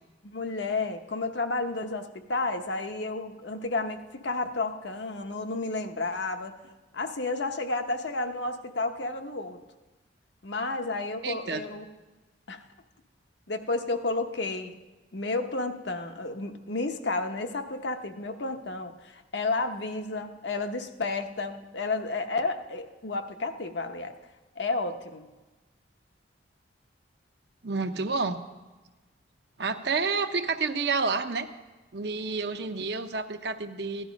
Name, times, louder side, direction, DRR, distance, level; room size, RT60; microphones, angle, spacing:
voice 1, 0.2-9.6 10.4-11.9 12.5-12.6 13.5-14.7 15.1-24.1 24.6-25.3, left 3 dB, 65° left, 6 dB, 0.9 m, -31 dB
voice 2, 11.2-11.6 27.6-28.4 29.6-31.5 31.9-34.1, right 4 dB, 60° right, 7 dB, 0.8 m, -29 dB
15.5 x 11.0 x 5.2 m, 1.2 s
head